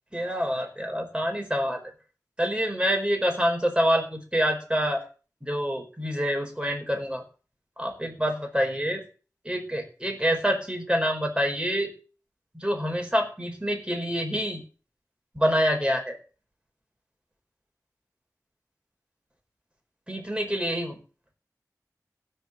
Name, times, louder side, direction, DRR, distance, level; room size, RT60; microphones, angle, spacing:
voice 1, 0.1-1.8 2.4-5.0 5.4-7.2 7.8-9.0 9.4-11.9 12.5-14.6 15.3-16.2 20.1-21.0, equal, 15° right, 2 dB, 4.7 m, -26 dB
16.5 x 5.8 x 7.6 m, 0.37 s
wide cardioid pair, 45°, 6 cm